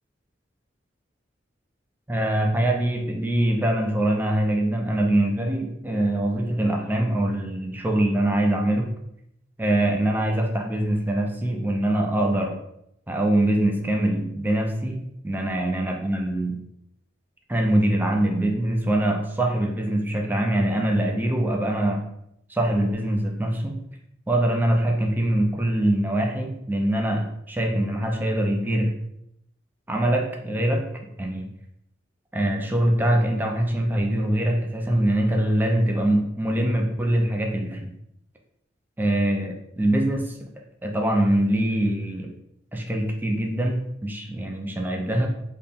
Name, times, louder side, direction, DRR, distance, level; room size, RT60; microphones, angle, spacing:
voice 1, 2.1-8.9 9.6-12.6 13.1-16.6 17.5-22.0 22.5-23.8 24.3-29.0 29.9-30.9 31.2-31.5 32.3-37.9 39.0-40.5 40.8-42.3 42.7-45.3, right 1 dB, 10° right, 2 dB, 0.4 m, -23 dB
3.5 x 2.2 x 4.0 m, 0.80 s
head